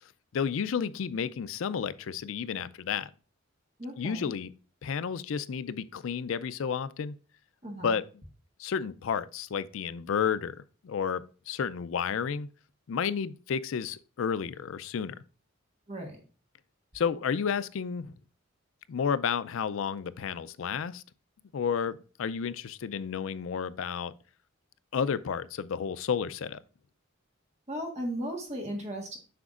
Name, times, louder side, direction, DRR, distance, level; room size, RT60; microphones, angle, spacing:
voice 1, 0.3-3.1 4.0-4.5 4.8-7.1 7.8-8.0 8.6-12.5 12.9-15.2 16.9-18.1 18.9-21.0 21.5-24.1 24.9-26.6, left 7 dB, 65° left, 0.4 m, -31 dB
voice 2, 3.8-4.3 7.6-8.0 15.9-16.2 27.7-29.2, equal, 30° right, 1.4 m, -36 dB
7.8 x 5.9 x 2.4 m
head